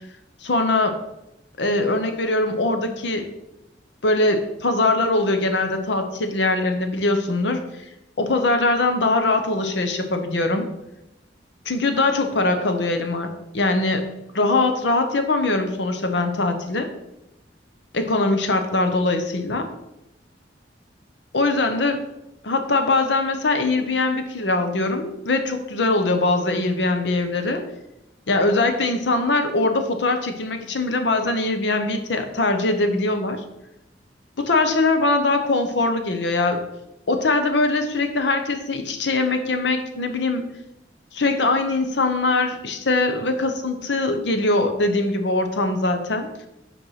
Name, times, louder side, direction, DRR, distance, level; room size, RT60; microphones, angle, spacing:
voice 1, 0.4-1.0 1.6-3.3 4.0-7.6 8.2-10.7 11.6-13.3 13.5-14.1 14.3-16.9 17.9-19.7 21.3-22.0 22.4-27.6 28.3-33.4 34.4-36.6 37.1-40.5 41.1-46.3, left 2 dB, 75° left, 7 dB, 0.8 m, -22 dB
5.3 x 4.6 x 5.7 m, 0.87 s
head